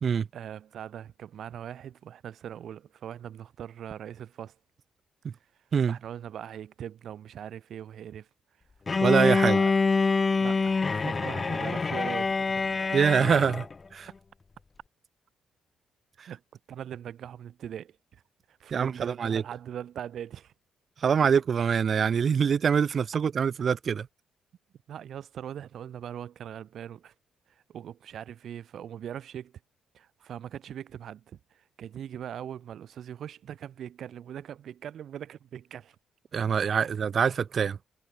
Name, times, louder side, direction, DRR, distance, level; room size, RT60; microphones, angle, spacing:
voice 1, 0.3-4.6 5.9-8.3 9.4-9.7 10.4-12.9 16.3-16.4 16.7-18.2 18.5-20.5 24.9-27.1 27.5-29.5 29.9-36.0 36.5-36.7, right 9 dB, 65° right, 2.4 m, -41 dB
Bowed string instrument, 8.9-13.7, left 4 dB, 30° left, 0.6 m, -26 dB
voice 2, 9.0-9.6 12.9-13.7 13.9-14.1 16.2-16.3 18.7-19.4 21.0-24.1 36.3-37.8, right 7 dB, 50° right, 0.5 m, -24 dB
cardioid pair, 90°, 0 cm